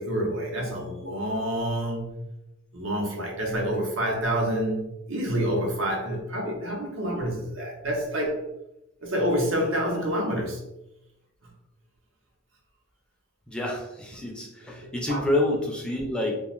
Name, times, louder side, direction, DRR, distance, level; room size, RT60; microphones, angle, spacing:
voice 1, 0.0-2.2 2.7-8.4 9.0-10.6 14.7-15.2, equal, 90° right, -1 dB, 0.8 m, -28 dB
voice 2, 13.5-16.3, left 1 dB, 5° left, -2 dB, 0.4 m, -28 dB
2.4 x 2.3 x 3.0 m, 0.89 s
head